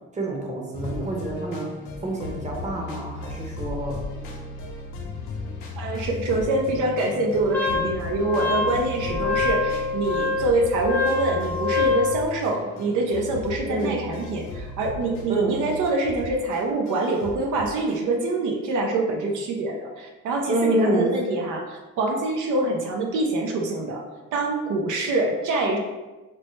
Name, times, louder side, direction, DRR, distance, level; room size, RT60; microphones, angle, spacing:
voice 1, 0.1-1.7 2.0-3.9 13.7-13.9 15.3-15.5 20.5-21.1, right 1 dB, 25° right, 0 dB, 0.8 m, -26 dB
sound 1, 0.7-18.3, left 3 dB, 80° left, 0.8 m, -36 dB
voice 2, 5.8-24.0 24.3-25.8, right 2 dB, 80° right, 1 dB, 0.6 m, -25 dB
Wind instrument woodwind instrument, 7.5-12.1, left 3 dB, 5° left, 0.5 m, -25 dB
4.4 x 2.1 x 3.0 m, 1.2 s
cardioid pair, 90°, 30 cm